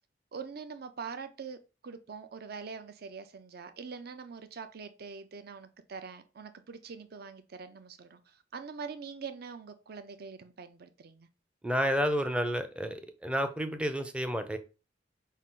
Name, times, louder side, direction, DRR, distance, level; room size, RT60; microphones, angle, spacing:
voice 1, 0.3-1.6 1.8-11.3, right 5 dB, 60° right, 0.5 m, -44 dB
voice 2, 11.6-14.6, equal, 5° right, 0.5 m, -30 dB
5.3 x 2.5 x 3.7 m
head